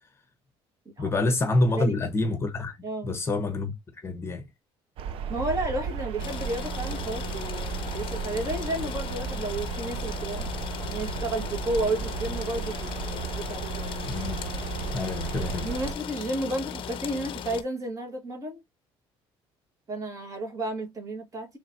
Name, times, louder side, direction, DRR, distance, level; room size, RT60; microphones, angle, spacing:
voice 1, 1.0-2.8 3.0-3.7 4.0-4.4 14.1-14.4 14.9-15.7, left 2 dB, 25° left, 0.9 m, -27 dB
voice 2, 1.6-2.0 2.8-3.1 5.3-10.5 10.9-14.2 15.6-18.6 19.9-21.6, right 1 dB, 30° right, 1.7 m, -32 dB
sound 1, 5.0-15.9, right 7 dB, 60° right, 0.6 m, -34 dB
sound 2, 6.2-17.6, left 8 dB, 55° left, 0.6 m, -37 dB
4.0 x 3.2 x 2.7 m
cardioid pair, 115°, 11 cm